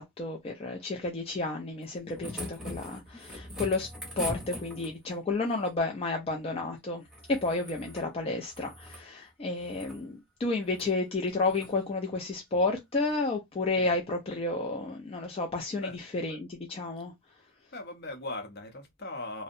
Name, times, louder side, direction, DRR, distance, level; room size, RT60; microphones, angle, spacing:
voice 1, 0.0-3.9 4.2-7.0 7.3-17.1, left 3 dB, 30° left, 0.3 m, -31 dB
sound 1, 1.8-5.1 7.1-8.1 8.4-9.1 9.6-10.0 10.7-10.9 11.5-11.7 13.1-13.2, equal, 5° right, 0.7 m, -41 dB
voice 2, 17.7-19.4, left 2 dB, 50° left, 0.7 m, -39 dB
2.6 x 2.0 x 2.5 m
head